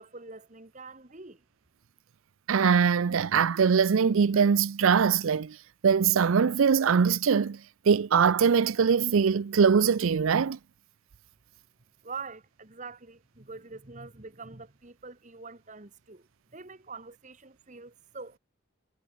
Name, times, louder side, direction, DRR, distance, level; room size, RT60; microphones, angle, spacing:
voice 1, 0.0-1.4 12.0-16.3 16.5-18.4, right 4 dB, 35° right, 1.6 m, -44 dB
voice 2, 2.5-5.6 5.8-7.6 7.9-10.6, right 6 dB, 80° right, 0.5 m, -22 dB
head